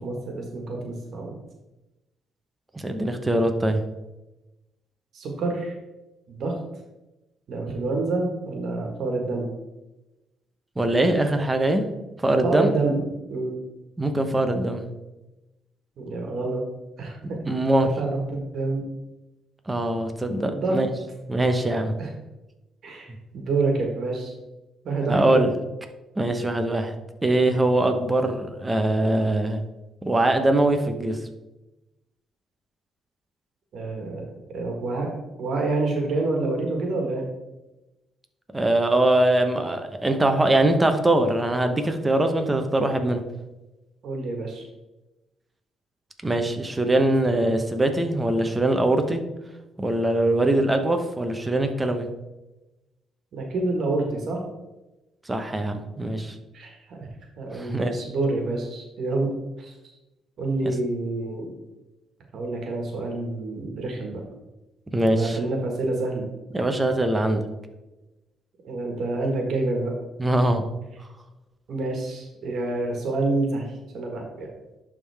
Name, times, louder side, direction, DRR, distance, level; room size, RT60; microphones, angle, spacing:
voice 1, 0.0-1.3 5.1-5.7 6.3-6.5 7.5-9.5 12.4-13.5 16.0-16.6 17.0-17.4 18.0-18.8 20.4-20.8 22.0-22.1 22.8-24.3 24.8-25.4 33.7-35.1 35.4-37.2 44.0-44.6 53.3-54.4 56.5-57.1 57.4-59.3 59.6-59.7 60.4-61.5 62.3-64.2 65.0-66.3 68.6-69.9 71.7-73.6 73.9-74.5, right 2 dB, 65° right, 1 dB, 1.6 m, -27 dB
voice 2, 2.7-3.8 10.8-11.9 12.2-12.7 14.0-14.9 17.4-17.9 19.7-20.9 21.3-21.9 25.1-25.5 26.2-26.9 27.2-29.6 30.0-31.2 38.5-43.2 46.2-49.2 49.8-52.1 55.3-56.3 57.5-57.9 60.6-60.7 64.9-65.4 66.5-67.4 70.2-70.6, right 1 dB, 15° right, 6 dB, 0.9 m, -22 dB
11.0 x 3.7 x 3.5 m, 1.0 s
cardioid pair, 90°, 0 cm